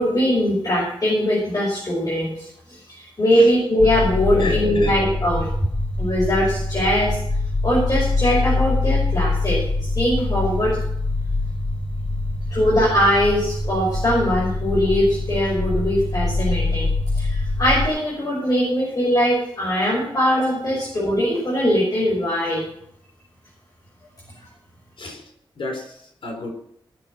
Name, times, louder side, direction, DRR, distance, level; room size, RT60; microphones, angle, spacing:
voice 1, 0.0-2.5 2.9-5.5 6.0-7.2 7.6-10.8 12.5-16.9 17.1-22.6, equal, 45° left, -4 dB, 5.6 m, -21 dB
sound 1, 3.8-17.9, left 2 dB, 20° left, 2.9 m, -24 dB
voice 2, 4.3-5.0 20.7-20.8 25.0-26.5, left 2 dB, 85° left, 2 dB, 4.2 m, -32 dB
18.0 x 7.1 x 6.2 m, 0.71 s
wide cardioid pair, 100°, 9 cm